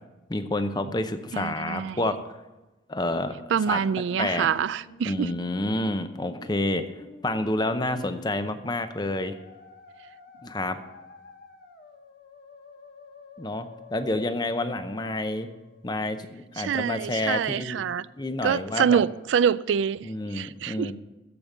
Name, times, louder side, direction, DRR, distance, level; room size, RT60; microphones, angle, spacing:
voice 1, 0.3-2.2 2.9-3.8 4.2-4.5 5.1-6.8 7.2-9.3 10.4-10.8 13.4-15.5 15.8-17.9 18.2-19.0 20.0-20.9, left 2 dB, 20° left, 0.6 m, -29 dB
voice 2, 1.3-2.0 3.5-5.3 16.6-18.1 18.4-20.9, right 7 dB, 75° right, 0.3 m, -26 dB
Musical instrument, 2.9-15.9, left 3 dB, 55° left, 1.3 m, -49 dB
14.0 x 5.2 x 7.1 m
head